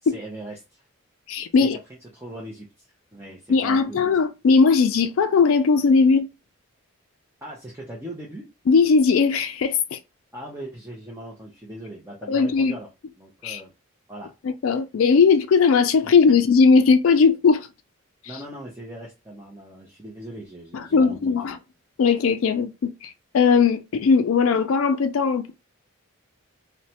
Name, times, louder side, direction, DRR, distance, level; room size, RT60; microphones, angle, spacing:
voice 1, 0.0-0.9 1.6-1.7 2.1-2.9 3.1-4.0 7.4-8.5 10.3-12.9 13.2-13.7 14.1-14.3 16.0-16.4 18.3-21.4, right 1 dB, 10° right, 0.5 m, -39 dB
voice 2, 1.3-1.8 3.5-6.3 8.7-10.0 12.3-12.7 13.4-13.6 14.4-17.7 20.7-21.6 22.0-25.5, left 5 dB, 75° left, 0.4 m, -19 dB
3.0 x 2.1 x 2.8 m
head